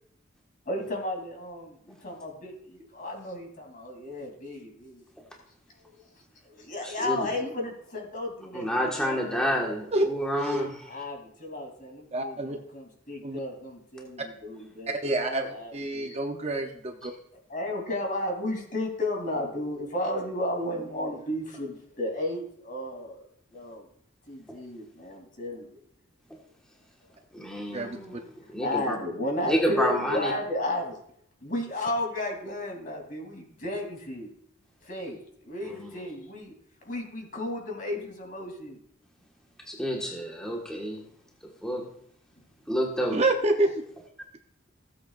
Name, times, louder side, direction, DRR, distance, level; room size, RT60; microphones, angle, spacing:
voice 1, 0.7-5.0 6.5-9.5 10.9-14.0 14.4-16.2 17.5-23.2 23.5-23.8 24.3-25.6 28.6-30.9 31.4-34.3 34.8-36.5 36.8-38.8, left 1 dB, 40° left, 1 dB, 3.1 m, -33 dB
voice 2, 6.8-7.3 8.5-10.7 27.3-29.0 29.4-30.3 35.7-36.0 39.7-41.0 41.6-41.8 42.7-43.2, equal, 5° left, -2 dB, 1.5 m, -29 dB
voice 3, 9.9-10.7 12.1-12.6 13.2-13.4 14.9-15.4 15.7-16.7 17.0-17.1 27.7-28.0 43.1-43.7, right 2 dB, 30° right, 4 dB, 0.7 m, -27 dB
16.0 x 8.3 x 2.5 m, 0.67 s
head